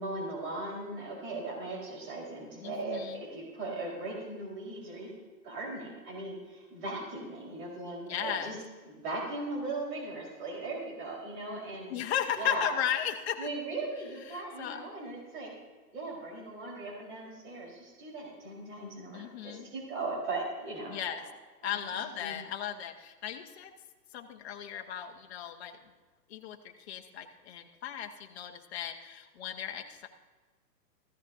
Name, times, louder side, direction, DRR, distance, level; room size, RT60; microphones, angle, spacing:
voice 1, 0.0-5.2 5.4-8.6 8.8-12.0 12.3-12.7 13.4-15.5 15.9-21.0 21.9-22.4, right 2 dB, 30° right, -3 dB, 4.2 m, -38 dB
voice 2, 2.6-3.2 8.1-8.5 11.9-13.5 14.3-14.8 19.1-19.7 20.9-21.2 21.6-23.7 24.1-25.8 26.3-30.1, left 10 dB, 40° left, 4 dB, 1.3 m, -36 dB
15.5 x 14.0 x 2.7 m, 1.3 s
hypercardioid pair, 160°, 49 cm